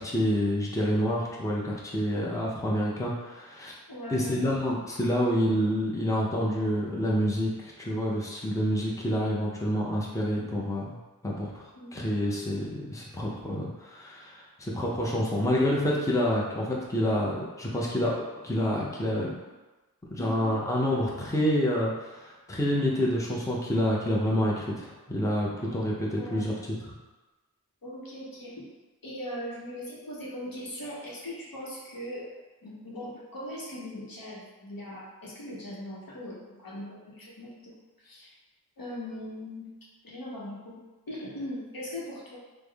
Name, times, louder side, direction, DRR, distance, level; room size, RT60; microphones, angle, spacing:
voice 1, 0.0-3.7 4.1-11.0 11.2-11.7 11.9-18.1 18.4-19.3 20.1-26.5 26.8-26.9, equal, 10° left, -4 dB, 0.6 m, -28 dB
voice 2, 3.9-4.4 11.7-12.1 20.2-20.5 26.1-26.5 27.8-28.7 29.0-32.3 32.6-38.4 38.8-39.7 40.0-40.8 41.1-42.4, left 1 dB, 65° left, -5 dB, 0.9 m, -40 dB
3.4 x 2.1 x 3.4 m, 1.2 s
wide cardioid pair, 40°, 37 cm